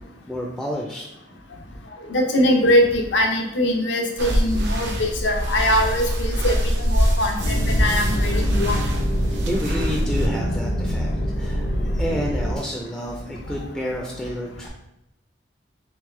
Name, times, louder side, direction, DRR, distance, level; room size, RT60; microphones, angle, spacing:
voice 1, 0.3-1.0 9.5-14.7, equal, ahead, -2 dB, 0.4 m, -30 dB
voice 2, 2.1-8.9, left 1 dB, 90° left, 2 dB, 0.7 m, -22 dB
sound 1, 4.2-10.3, equal, 70° right, 0.7 m, -24 dB
sound 2, 7.4-12.6, equal, 50° left, 0.6 m, -24 dB
3.5 x 3.2 x 3.1 m, 0.88 s
head